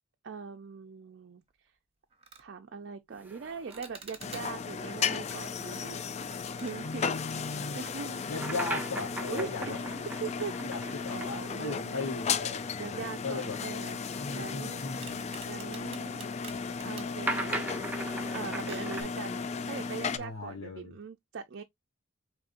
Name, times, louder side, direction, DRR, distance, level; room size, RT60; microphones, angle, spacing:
voice 1, 0.2-1.7 2.4-6.0 6.5-7.1 7.4-8.3 9.3-9.9 10.2-12.0 12.8-14.0 14.3-14.8 15.5-16.3 16.8-17.7 18.3-21.6, right 5 dB, 55° right, 0.4 m, -41 dB
sound 1, 1.5-1.7 2.1-2.5 3.7-4.7 6.0-8.4 8.7-8.8 9.6-9.7 11.5-12.1 12.5-12.6 13.1-14.6 15.0-17.2 17.7-17.9 18.2-20.3, right 5 dB, 30° right, 0.9 m, -51 dB
sound 2, 3.1-12.1 12.4-12.5 13.4-19.0, right 2 dB, 10° right, 0.6 m, -41 dB
sound 3, 4.2-20.2, left 5 dB, 30° left, 0.3 m, -35 dB
voice 2, 6.8-7.8 8.3-9.8 10.6-13.6 14.2-15.3 20.2-20.9, left 3 dB, 80° left, 1.0 m, -38 dB
5.0 x 3.1 x 2.5 m
head